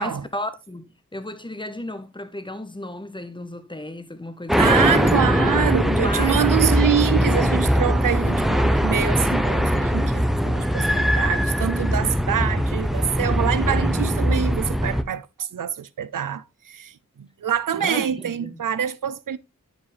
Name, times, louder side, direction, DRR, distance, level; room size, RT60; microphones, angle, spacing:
voice 1, 0.0-5.0 5.5-6.9 17.7-18.6, left 1 dB, 15° left, 1.1 m, -34 dB
sound 1, 4.5-15.0, equal, ahead, 0.8 m, -21 dB
voice 2, 4.6-19.4, right 9 dB, 85° right, 0.6 m, -25 dB
9.5 x 5.3 x 3.3 m
wide cardioid pair, 60°, 32 cm